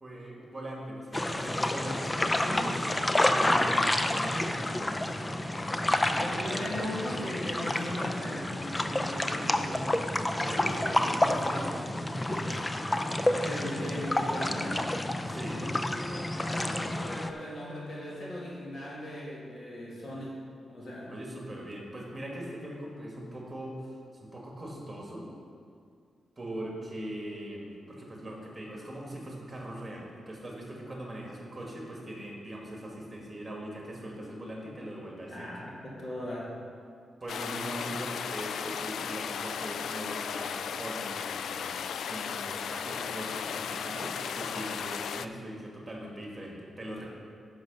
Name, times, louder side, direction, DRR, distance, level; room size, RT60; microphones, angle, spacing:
voice 1, 0.0-2.9 3.2-4.5 6.5-7.2 10.4-12.6 15.3-15.7 21.1-25.3 26.4-35.5 37.2-47.1, right 1 dB, 15° right, -2 dB, 2.0 m, -41 dB
sound 1, 1.1-17.3, left 1 dB, 15° left, 0.4 m, -29 dB
voice 2, 6.1-10.0 13.4-14.9 16.3-20.4 20.7-21.1 35.3-36.6, left 1 dB, 40° left, -4 dB, 2.0 m, -38 dB
sound 2, 37.3-45.3, left 7 dB, 80° left, 0.3 m, -35 dB
10.5 x 6.4 x 5.3 m, 2.3 s
wide cardioid pair, 165°, 0 cm